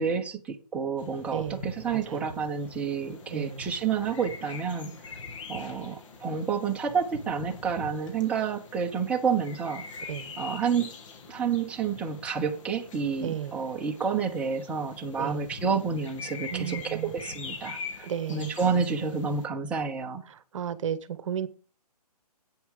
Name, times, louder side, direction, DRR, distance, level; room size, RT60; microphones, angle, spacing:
voice 1, 0.0-5.1 5.5-9.8 10.4-10.9 11.3-20.2, right 6 dB, 5° right, 1 dB, 0.9 m, -29 dB
sound 1, 1.0-19.5, left 5 dB, 50° left, 2.4 m, -44 dB
voice 2, 1.3-2.3 3.3-3.7 10.1-10.3 13.2-13.5 15.2-15.5 16.5-17.1 18.0-18.5 18.8-19.0 20.3-21.5, right 9 dB, 50° right, 15 dB, 1.0 m, -34 dB
10.5 x 8.5 x 4.9 m, 0.37 s
hypercardioid pair, 150°, 21 cm